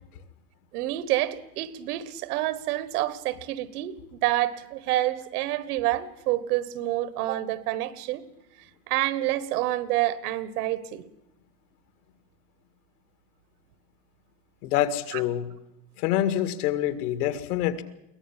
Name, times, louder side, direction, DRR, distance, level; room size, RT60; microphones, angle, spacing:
voice 1, 0.7-8.2 8.9-11.0, right 15 dB, 75° right, 1.5 m, -28 dB
voice 2, 14.6-15.5 16.0-17.8, left 12 dB, 75° left, 2.2 m, -26 dB
23.0 x 18.0 x 7.4 m
supercardioid pair, 175°, 46 cm